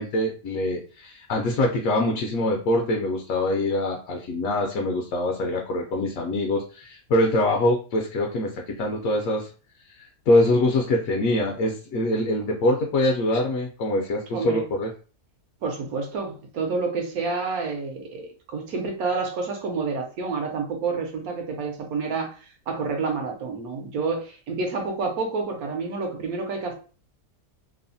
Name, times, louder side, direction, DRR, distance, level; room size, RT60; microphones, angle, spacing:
voice 1, 0.0-9.5 9.9-14.9, left 1 dB, 70° left, 0.9 m, -24 dB
voice 2, 15.6-22.4 22.7-26.7, right 4 dB, 75° right, 1.1 m, -29 dB
3.0 x 2.1 x 2.6 m
omnidirectional pair, 1.6 m